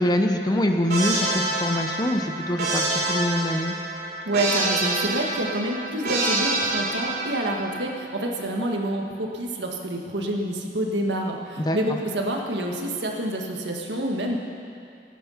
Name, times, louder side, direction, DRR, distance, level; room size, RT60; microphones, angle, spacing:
voice 1, 0.0-3.8 11.6-11.8, left 1 dB, 25° left, 5 dB, 0.7 m, -24 dB
sound 1, 0.9-7.8, right 2 dB, 60° right, 3.3 m, -27 dB
voice 2, 4.2-14.4, right 1 dB, 85° right, 1 dB, 1.7 m, -27 dB
17.0 x 9.4 x 5.8 m, 2.5 s
head